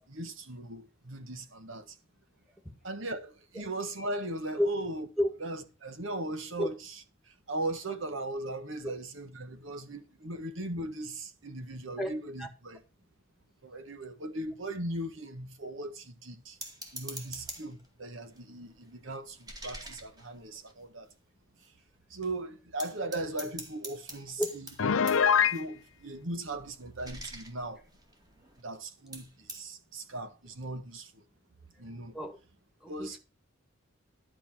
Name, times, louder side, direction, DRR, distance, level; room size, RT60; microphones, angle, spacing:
voice 1, 0.0-1.9 2.8-5.1 5.4-6.9 7.3-12.8 13.6-16.6 16.9-21.1 22.1-24.7 25.5-27.8 28.6-31.2 31.8-32.2 32.9-33.2, right 1 dB, 70° right, 1.6 m, -38 dB
sound 1, 16.6-17.9 18.3-21.1 21.6-21.7 21.9-22.3 22.8-28.8 29.1-29.6, right 2 dB, 20° right, 2.1 m, -46 dB
Piano, 24.8-25.6, left 7 dB, 85° left, 0.6 m, -23 dB
voice 2, 32.8-33.2, left 1 dB, ahead, 1.8 m, -29 dB
11.5 x 5.2 x 7.4 m
head